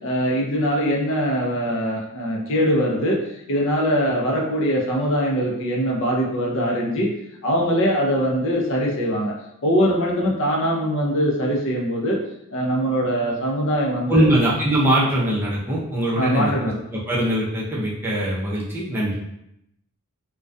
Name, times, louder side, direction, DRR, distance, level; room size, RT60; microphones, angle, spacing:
voice 1, 0.0-7.1 7.4-9.3 9.6-12.2 12.5-14.2 16.2-16.7, equal, 60° left, -2 dB, 0.5 m, -22 dB
voice 2, 14.1-19.1, right 1 dB, 10° right, -7 dB, 0.5 m, -22 dB
2.2 x 2.2 x 2.5 m, 0.79 s
head